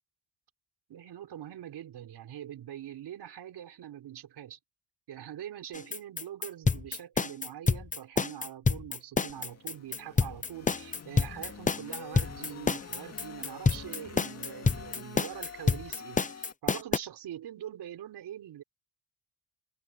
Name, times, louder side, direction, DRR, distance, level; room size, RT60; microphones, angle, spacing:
voice 1, 0.9-4.6 5.1-18.6, right 11 dB, 65° right, 4.8 m, -43 dB
sound 1, 5.7-17.0, left 4 dB, 20° left, 0.9 m, -28 dB
sound 2, 9.3-16.5, left 6 dB, 35° left, 2.5 m, -47 dB
cardioid pair, 120°, 43 cm